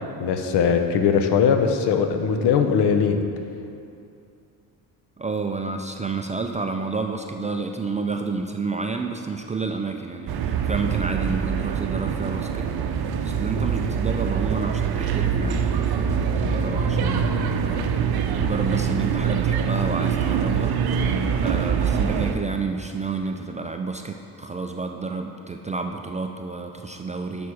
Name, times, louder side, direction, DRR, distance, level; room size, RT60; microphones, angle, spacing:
voice 1, 0.2-3.2, left 6 dB, 65° left, 7 dB, 0.8 m, -20 dB
voice 2, 5.2-12.7 13.1-17.8 18.3-21.0 21.4-27.5, right 4 dB, 20° right, 4 dB, 0.3 m, -30 dB
sound 1, 10.3-22.3, right 7 dB, 60° right, 0.6 m, -24 dB
7.0 x 6.0 x 4.8 m, 2.6 s
supercardioid pair, 80°, 43 cm